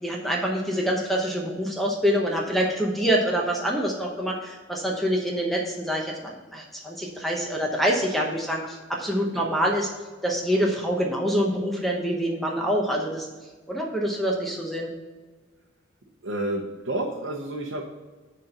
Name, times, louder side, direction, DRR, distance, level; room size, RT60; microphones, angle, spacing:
voice 1, 0.0-9.9 10.2-13.3 13.7-14.9, equal, ahead, -1 dB, 0.8 m, -26 dB
voice 2, 16.2-17.8, right 1 dB, 80° right, -1 dB, 0.9 m, -30 dB
6.4 x 4.3 x 6.4 m, 1.3 s
head